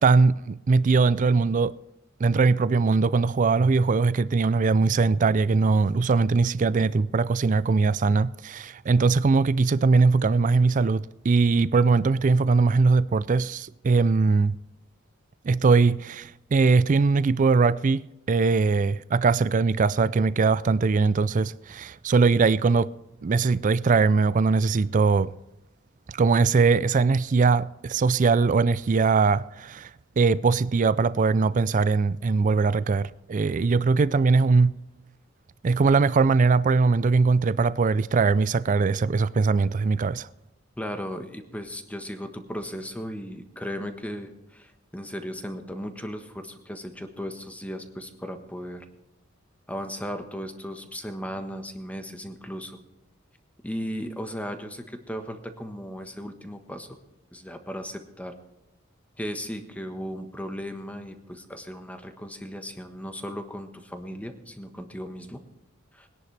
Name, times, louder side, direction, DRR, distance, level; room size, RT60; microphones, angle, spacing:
voice 1, 0.0-1.7 2.2-14.6 15.4-22.9 23.2-25.3 26.1-29.9 30.2-34.7 35.6-40.3, right 4 dB, 40° right, 0.4 m, -21 dB
voice 2, 40.8-48.9 49.7-52.8 53.6-57.0 57.3-58.3 59.2-65.4 65.9-66.1, equal, 5° left, 1.2 m, -36 dB
20.5 x 10.5 x 3.3 m
head